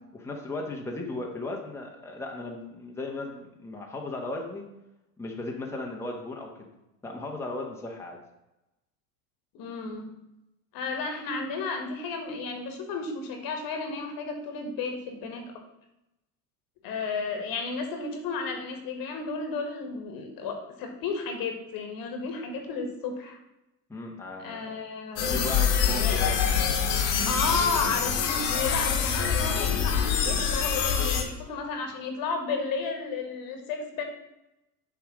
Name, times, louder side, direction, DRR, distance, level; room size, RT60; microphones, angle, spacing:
voice 1, 0.1-4.6 5.2-6.7 7.0-8.2 23.9-24.7 25.1-26.8, left 2 dB, 5° left, -1 dB, 1.2 m, -36 dB
voice 2, 9.5-10.1 10.7-15.5 16.8-23.4 24.4-25.3 25.9-26.2 27.2-34.0, left 4 dB, 50° left, 3 dB, 1.7 m, -33 dB
sound 1, 25.2-31.2, left 7 dB, 65° left, 1.6 m, -25 dB
7.0 x 3.6 x 6.1 m, 0.93 s
hypercardioid pair, 90°, 45 cm